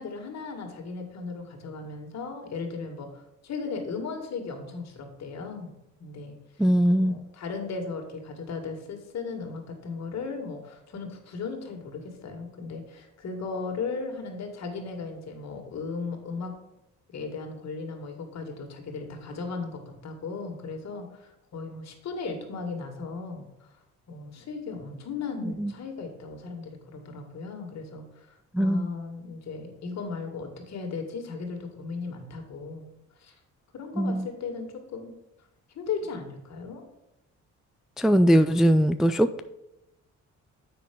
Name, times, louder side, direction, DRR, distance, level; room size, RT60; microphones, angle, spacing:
voice 1, 0.0-5.7 6.0-6.4 6.9-16.5 17.1-23.5 24.1-32.9 33.2-33.3 33.7-35.1 35.7-36.8, left 4 dB, 60° left, 3 dB, 2.1 m, -36 dB
voice 2, 6.6-7.2 25.4-25.7 28.5-28.9 34.0-34.3 38.0-39.4, equal, ahead, 9 dB, 0.3 m, -21 dB
7.5 x 5.9 x 5.3 m, 0.90 s
cardioid pair, 90°, 30 cm